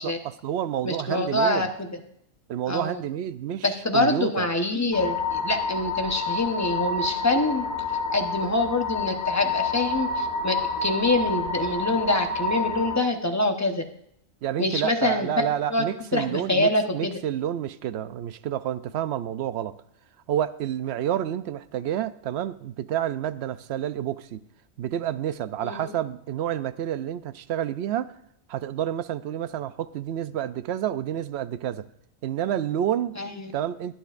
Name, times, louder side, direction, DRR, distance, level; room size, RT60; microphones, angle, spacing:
voice 1, 0.0-1.7 2.5-3.7 3.9-4.5 14.4-19.7 20.3-24.4 24.8-28.1 28.5-31.8 32.2-33.2 33.5-33.9, right 11 dB, 65° right, 0.7 m, -29 dB
voice 2, 0.8-2.0 2.7-3.0 3.6-7.6 8.1-13.8 14.6-15.8 16.1-17.2 25.6-25.9 33.2-33.5, left 2 dB, 15° left, 0.8 m, -25 dB
sound 1, 4.9-13.0, left 3 dB, 85° left, 1.9 m, -28 dB
22.0 x 9.0 x 2.5 m
omnidirectional pair, 1.4 m